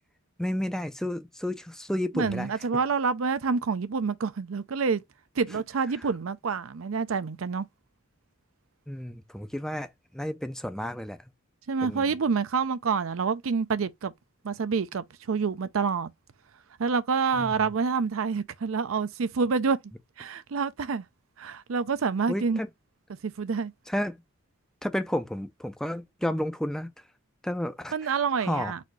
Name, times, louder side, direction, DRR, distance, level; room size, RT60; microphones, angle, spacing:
voice 1, 0.4-2.5 5.9-6.1 8.9-11.2 11.8-12.1 17.4-17.6 22.3-22.7 23.9-24.2 24.8-26.9 27.4-28.7, left 1 dB, 5° left, 0.4 m, -32 dB
voice 2, 2.1-5.0 5.4-7.7 11.7-14.1 14.4-16.1 16.8-19.8 20.2-21.0 21.4-22.6 23.2-23.7 27.9-28.8, right 5 dB, 75° right, 0.5 m, -27 dB
4.2 x 2.7 x 4.6 m
head